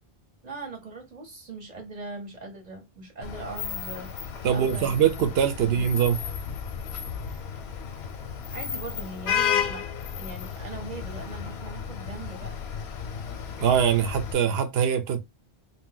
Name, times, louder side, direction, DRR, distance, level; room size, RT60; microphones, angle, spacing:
voice 1, 0.4-4.1 4.5-4.9 5.6-5.8 7.3-7.4 8.5-12.5, right 3 dB, 45° right, 0.8 m, -40 dB
Vehicle horn car horn honking / Traffic noise roadway noise, 3.2-14.3, left 8 dB, 85° left, 0.9 m, -33 dB
voice 2, 4.4-6.2 13.6-15.2, right 8 dB, 75° right, 0.8 m, -23 dB
2.6 x 2.2 x 3.7 m
omnidirectional pair, 1.1 m